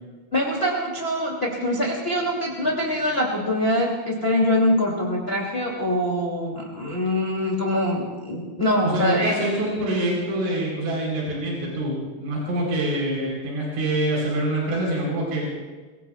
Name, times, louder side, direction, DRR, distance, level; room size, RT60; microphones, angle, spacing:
voice 1, 0.3-9.3, left 1 dB, 20° left, -2 dB, 1.6 m, -24 dB
voice 2, 8.8-15.5, right 1 dB, 80° right, -3 dB, 6.6 m, -25 dB
24.0 x 24.0 x 2.4 m, 1.3 s
omnidirectional pair, 5.5 m